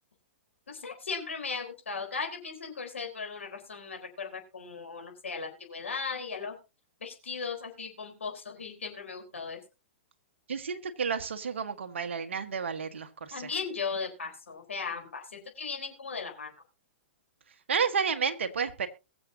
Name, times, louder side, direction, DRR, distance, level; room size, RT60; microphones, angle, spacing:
voice 1, 0.7-6.6 7.0-9.6 13.3-16.5, left 5 dB, 80° left, 4.1 m, -37 dB
voice 2, 10.5-13.5 17.7-18.9, right 6 dB, 75° right, 1.5 m, -31 dB
21.5 x 7.4 x 2.8 m
hypercardioid pair, 115°, 7 cm